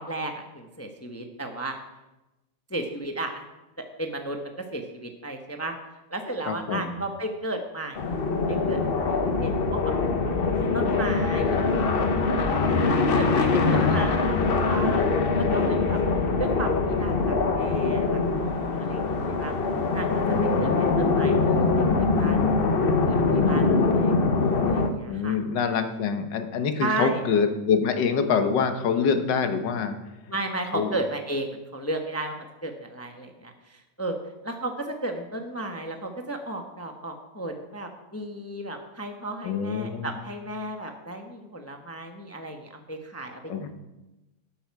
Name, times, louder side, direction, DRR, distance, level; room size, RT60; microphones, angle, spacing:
voice 1, 0.0-1.8 2.7-3.4 4.0-4.4 4.7-5.8 6.1-8.0 8.5-9.2 9.4-9.9 10.5-11.6 13.1-15.0 15.3-16.0 16.4-19.0 19.4-19.5 19.9-20.1 20.4-22.5 23.1-24.1 24.4-25.4 25.6-25.7 26.8-27.2 30.3-32.3 32.6-34.2 34.4-43.4, right 2 dB, 15° left, 4 dB, 0.6 m, -34 dB
voice 2, 6.5-6.9 12.8-12.9 13.3-14.0 20.3-21.0 25.0-30.0 30.7-30.9 39.4-40.2 43.5-43.7, left 6 dB, 90° left, 8 dB, 1.7 m, -26 dB
sound 1, 8.0-24.9, left 3 dB, 45° left, 0.8 m, -23 dB
12.0 x 8.7 x 4.7 m, 1.0 s
omnidirectional pair, 1.9 m